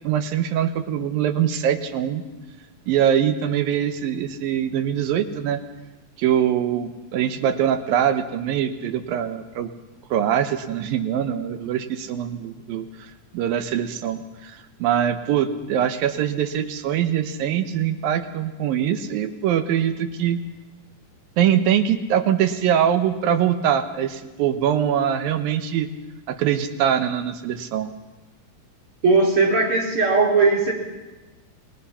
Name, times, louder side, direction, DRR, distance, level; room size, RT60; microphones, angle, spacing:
voice 1, 0.0-2.2 2.9-5.6 6.2-9.7 10.1-12.9 13.3-20.4 21.4-25.9 26.3-27.9, right 9 dB, 90° right, 9 dB, 3.0 m, -23 dB
voice 2, 29.0-30.7, right 3 dB, 40° right, 0 dB, 4.4 m, -18 dB
29.0 x 19.5 x 5.8 m, 1.1 s
omnidirectional pair, 4.0 m